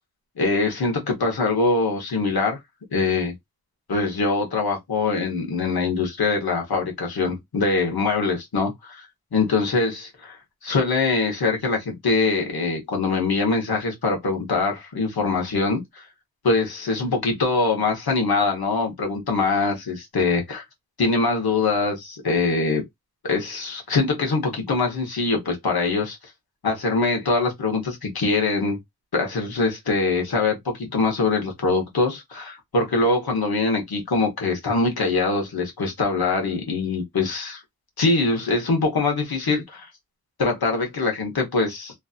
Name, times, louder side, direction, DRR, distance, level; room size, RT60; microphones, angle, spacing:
voice 1, 0.4-2.6 2.9-3.4 3.9-9.1 9.3-10.4 10.6-16.0 16.4-20.6 21.0-22.8 23.2-26.2 26.6-28.8 29.1-37.6 38.0-39.9 40.4-41.9, left 3 dB, 70° left, 1.3 m, -23 dB
3.2 x 2.7 x 2.4 m
wide cardioid pair, 90°, 38 cm